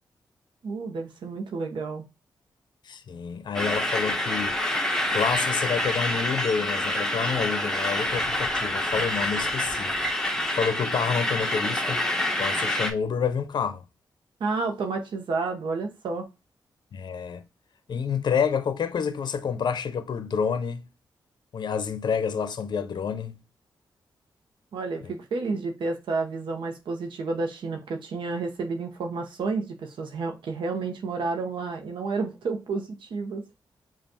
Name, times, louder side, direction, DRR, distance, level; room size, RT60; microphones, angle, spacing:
voice 1, 0.6-2.0 14.4-16.3 24.7-33.4, right 4 dB, 80° right, 0.8 m, -30 dB
voice 2, 2.8-4.6 5.1-9.9 10.5-12.0 12.4-13.8 16.9-17.4 17.9-20.9 21.5-23.4 25.0-25.1, left 6 dB, 65° left, 0.5 m, -28 dB
sound 1, 3.5-12.9, left 1 dB, 5° left, 0.9 m, -27 dB
5.2 x 2.4 x 2.7 m
cardioid pair, 70°, 8 cm